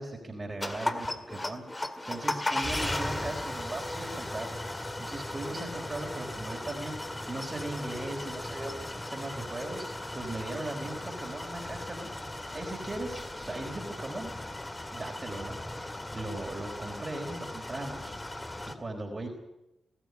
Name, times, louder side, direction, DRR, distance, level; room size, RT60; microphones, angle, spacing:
voice 1, 0.0-12.1 12.5-14.3 14.9-19.3, right 2 dB, 30° right, 0 dB, 4.3 m, -39 dB
sound 1, 0.6-18.8, left 1 dB, 20° left, 2.0 m, -37 dB
21.0 x 13.0 x 9.7 m, 0.90 s
supercardioid pair, 55°, 0 cm